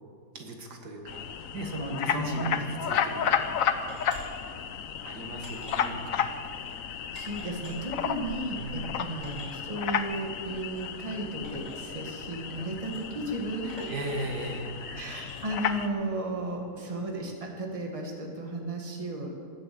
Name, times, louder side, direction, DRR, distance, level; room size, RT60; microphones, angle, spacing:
voice 1, 0.3-1.2 1.5-3.6 5.0-6.3 8.5-8.9 13.9-14.7, right 1 dB, 70° right, 2 dB, 2.3 m, -37 dB
sound 1, 1.1-15.9, left 8 dB, 60° left, 1.0 m, -33 dB
voice 2, 1.9-2.6 6.8-13.9 14.8-19.3, right 1 dB, 20° right, 1 dB, 1.8 m, -34 dB
sound 2, 3.9-4.2 4.9-5.0 5.4-5.8 6.6-6.7 7.1-7.7 8.6-8.7 8.8-8.9 9.2-9.5 10.7-10.8 11.4-11.8 12.8-13.0 13.7-14.0 15.2-15.4, left 1 dB, 25° left, 5.3 m, -48 dB
19.0 x 7.7 x 8.4 m, 2.3 s
omnidirectional pair, 1.8 m